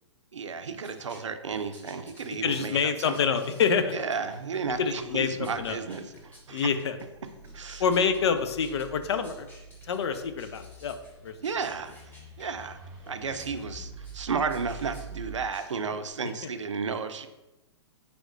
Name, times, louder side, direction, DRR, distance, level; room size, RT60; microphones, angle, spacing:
voice 1, 0.3-3.4 3.9-6.7 7.5-7.8 11.4-11.9 12.4-12.8 13.1-17.3, right 5 dB, 85° right, 9 dB, 0.5 m, -33 dB
sound 1, 0.8-16.1, left 1 dB, 15° left, 1.4 m, -54 dB
voice 2, 2.4-4.0 4.8-5.8 6.5-7.0 7.8-9.5 9.9-11.3, left 6 dB, 65° left, 9 dB, 0.5 m, -27 dB
Driving by snowy day, 5.4-15.5, right 3 dB, 20° right, 1.1 m, -47 dB
5.9 x 3.4 x 2.6 m, 1.0 s
hypercardioid pair, 120°, 15 cm